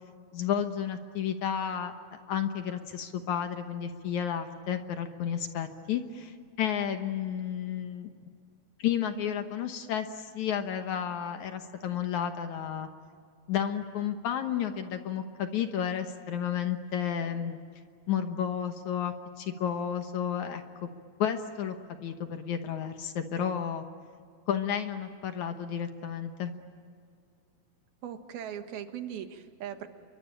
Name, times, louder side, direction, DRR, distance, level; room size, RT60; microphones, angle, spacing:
voice 1, 0.3-1.9 2.3-8.1 8.8-12.9 13.5-17.6 18.1-20.9 21.2-23.9 24.5-26.5, left 9 dB, 65° left, 7 dB, 2.2 m, -32 dB
voice 2, 28.0-29.9, right 9 dB, 85° right, 7 dB, 3.5 m, -39 dB
29.0 x 23.0 x 8.9 m, 2.2 s
omnidirectional pair, 4.2 m